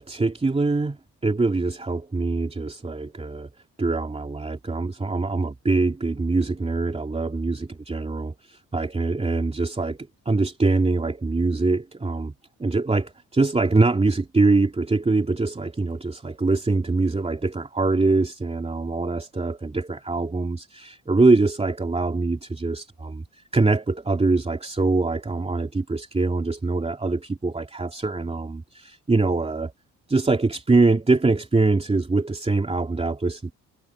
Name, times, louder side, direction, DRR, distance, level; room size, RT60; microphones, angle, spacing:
voice 1, 0.0-3.5 3.8-10.0 10.2-12.3 12.6-23.2 23.5-29.7 30.1-33.5, right 3 dB, 20° right, 3.0 m, -23 dB
cardioid pair, 90°, 30 cm